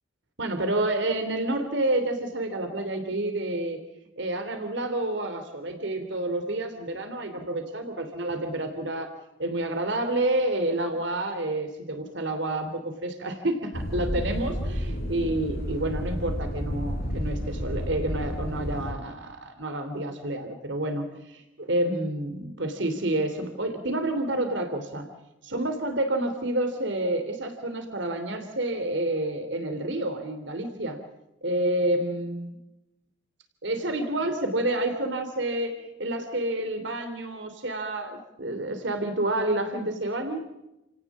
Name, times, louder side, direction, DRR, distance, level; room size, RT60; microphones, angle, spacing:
voice 1, 0.4-3.8 4.2-9.1 9.4-25.1 25.4-31.0 31.4-32.6 33.6-40.4, right 1 dB, 65° right, 7 dB, 3.0 m, -29 dB
sound 1, 13.7-18.9, equal, 50° left, 5.5 m, -31 dB
30.0 x 18.0 x 7.3 m, 0.93 s
head